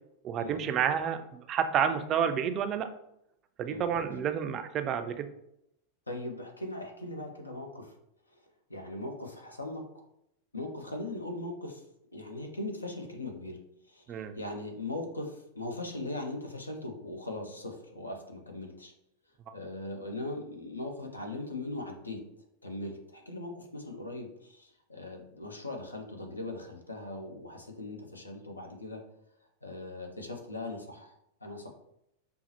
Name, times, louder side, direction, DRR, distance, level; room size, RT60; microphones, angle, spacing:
voice 1, 0.2-2.9 3.6-5.3 14.1-14.3 19.5-19.6, right 8 dB, 30° right, 8 dB, 0.3 m, -30 dB
voice 2, 6.1-7.9 8.7-9.8 10.5-11.8 12.1-13.6 13.9-18.9 19.5-22.2 22.6-29.0 29.6-31.1 31.4-31.7, left 2 dB, 80° left, 3 dB, 0.7 m, -39 dB
5.2 x 2.0 x 2.9 m, 0.79 s
figure-of-eight pair, 90°, 0 cm